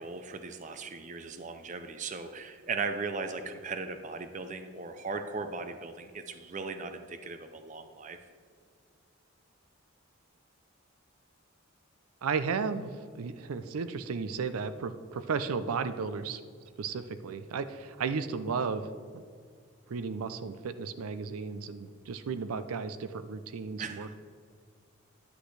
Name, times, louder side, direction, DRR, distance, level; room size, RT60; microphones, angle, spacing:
voice 1, 0.0-8.2 23.8-24.1, right 4 dB, 35° right, 8 dB, 0.5 m, -38 dB
voice 2, 12.2-16.4 16.8-18.9 19.1-19.3 19.9-24.1, right 5 dB, 85° right, 12 dB, 0.4 m, -34 dB
10.5 x 8.1 x 3.2 m, 2.1 s
head